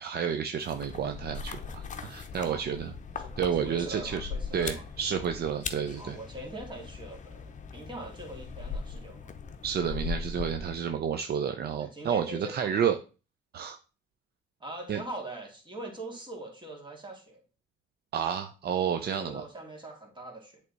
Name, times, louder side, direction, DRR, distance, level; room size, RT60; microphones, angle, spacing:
voice 1, 0.0-2.9 3.4-6.2 9.6-13.0 13.5-13.8 14.9-15.0 18.1-19.4, right 8 dB, 55° right, 7 dB, 0.6 m, -30 dB
sound 1, 0.6-11.0, left 5 dB, 40° left, 0.8 m, -40 dB
voice 2, 3.2-4.9 6.0-9.3 10.9-11.0 11.8-12.8 14.6-17.4 19.0-20.6, right 1 dB, 25° right, 1 dB, 2.3 m, -42 dB
8.0 x 3.4 x 4.0 m, 0.34 s
cardioid pair, 90°, 20 cm